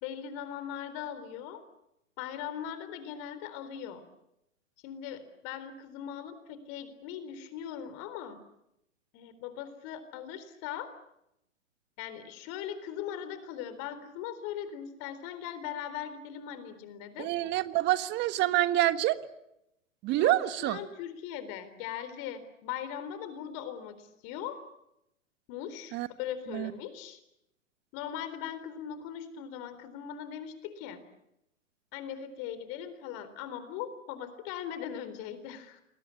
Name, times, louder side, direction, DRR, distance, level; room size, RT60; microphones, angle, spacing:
voice 1, 0.0-1.6 2.2-4.0 4.8-8.4 9.1-10.9 12.0-17.3 20.2-24.6 25.5-27.2 27.9-31.0 31.9-35.8, left 9 dB, 35° left, 12 dB, 4.0 m, -40 dB
voice 2, 17.2-19.2 20.0-20.8 25.9-26.1 26.5-26.7, right 15 dB, 25° right, 13 dB, 1.4 m, -27 dB
29.0 x 21.5 x 8.6 m, 0.82 s
hypercardioid pair, 120°, 39 cm